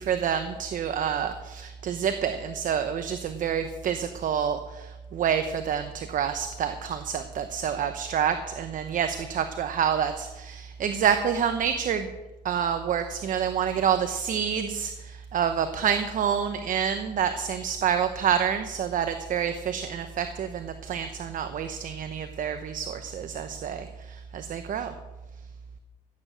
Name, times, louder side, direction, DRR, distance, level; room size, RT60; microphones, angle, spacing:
voice 1, 0.0-12.1 12.4-24.9, right 8 dB, 50° right, 8 dB, 1.0 m, -28 dB
15.0 x 9.0 x 6.5 m, 1.1 s
cardioid pair, 110°, 17 cm